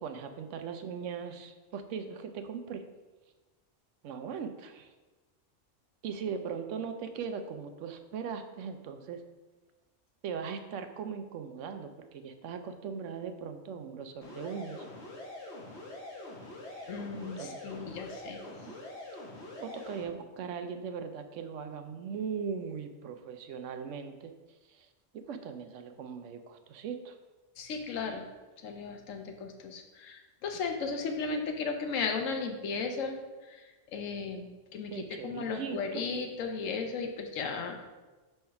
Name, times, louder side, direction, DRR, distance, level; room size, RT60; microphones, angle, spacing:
voice 1, 0.0-2.8 4.0-4.9 6.0-9.2 10.2-14.9 16.7-17.8 18.7-18.8 19.6-24.3 24.7-24.9 25.1-27.2 34.9-36.1, right 6 dB, 75° right, 8 dB, 0.9 m, -39 dB
sound 1, 14.2-20.0, left 2 dB, 60° left, 1.5 m, -44 dB
voice 2, 16.9-18.4 27.6-28.2 28.6-33.2 33.5-33.6 33.9-34.9 35.2-37.8, left 4 dB, 85° left, 4 dB, 1.1 m, -35 dB
5.3 x 3.4 x 5.7 m, 1.2 s
omnidirectional pair, 1.3 m